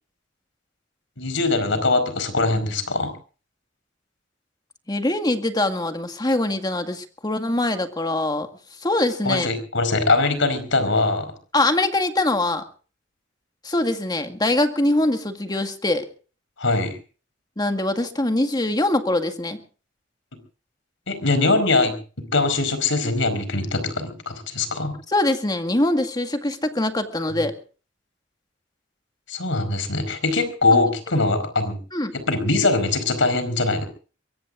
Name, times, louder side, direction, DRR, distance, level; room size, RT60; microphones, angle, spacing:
voice 1, 1.2-3.1 9.2-11.3 16.6-17.0 21.1-21.9 22.3-24.9 29.3-31.8 32.1-33.9, left 3 dB, 75° left, 10 dB, 4.8 m, -22 dB
voice 2, 4.9-8.5 8.8-9.5 11.5-12.6 13.6-16.1 17.6-19.6 25.1-27.6 30.7-30.8 31.9-32.1, left 2 dB, 20° left, 7 dB, 1.8 m, -23 dB
23.5 x 23.0 x 2.5 m, 0.38 s
head